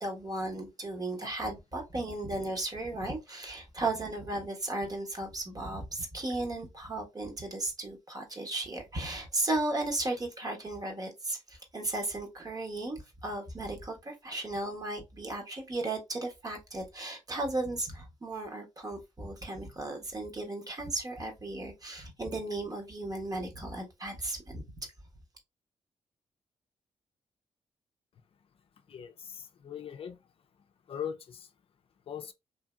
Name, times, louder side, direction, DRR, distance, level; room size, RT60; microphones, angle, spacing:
voice 1, 0.0-24.9, right 2 dB, 35° right, 1.1 m, -35 dB
voice 2, 28.9-30.2 30.9-31.5 32.1-32.3, left 8 dB, 55° left, 0.4 m, -40 dB
2.7 x 2.7 x 2.2 m
cardioid pair, 60°, 11 cm